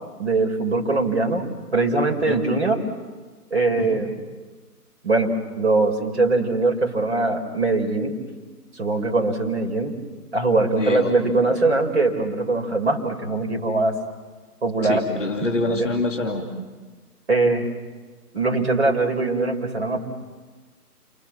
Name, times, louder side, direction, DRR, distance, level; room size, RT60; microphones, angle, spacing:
voice 1, 0.2-1.4 1.7-2.8 3.5-4.1 5.0-5.3 5.6-8.2 8.7-10.0 10.3-14.0 14.6-15.0 15.7-15.9 17.3-17.6 18.3-20.0, right 3 dB, 45° right, 4 dB, 4.7 m, -21 dB
voice 2, 10.8-11.1 14.8-16.5, left 2 dB, 10° left, -9 dB, 1.4 m, -25 dB
29.0 x 24.5 x 7.3 m, 1.3 s
figure-of-eight pair, 170°, 47 cm